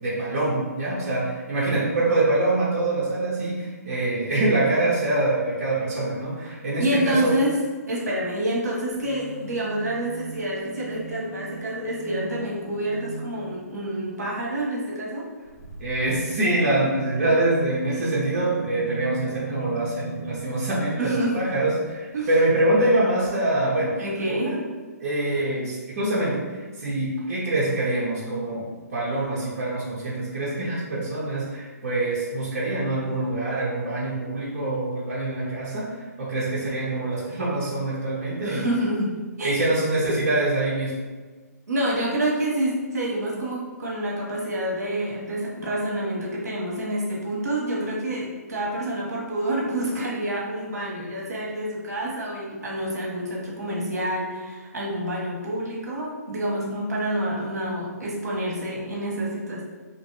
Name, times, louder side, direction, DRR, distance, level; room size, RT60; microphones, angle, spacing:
voice 1, 0.0-7.3 15.8-23.9 24.3-24.6 25.0-38.7 39.4-41.0, right 2 dB, 50° right, -7 dB, 0.8 m, -25 dB
voice 2, 6.8-7.5 7.9-15.2 21.0-21.4 22.1-22.3 24.0-24.5 38.4-39.5 41.7-59.6, right 1 dB, 70° right, -4 dB, 1.0 m, -28 dB
sound 1, 8.9-13.8 15.4-20.9 21.8-21.9 22.1-22.2, right 2 dB, 65° left, 1.2 m, -38 dB
2.8 x 2.5 x 3.0 m, 1.4 s
figure-of-eight pair, 135°, 9 cm